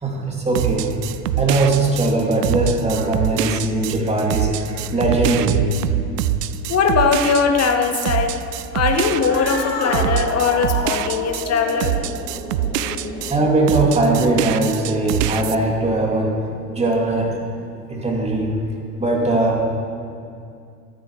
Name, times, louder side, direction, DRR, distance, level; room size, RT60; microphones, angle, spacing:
voice 1, 0.0-0.9 1.4-5.7 13.3-16.4 16.7-17.4 17.9-18.5 19.0-19.6, right 2 dB, 15° right, -2 dB, 2.8 m, -20 dB
sound 1, 0.6-13.4 13.7-15.6, right 12 dB, 75° right, 0.6 m, -24 dB
voice 2, 6.7-8.4 8.7-12.0, left 5 dB, 30° left, 5 dB, 1.7 m, -20 dB
Cat, 9.1-14.7, left 2 dB, 90° left, 2.4 m, -31 dB
13.5 x 11.0 x 5.0 m, 2.4 s
hypercardioid pair, 80°, 48 cm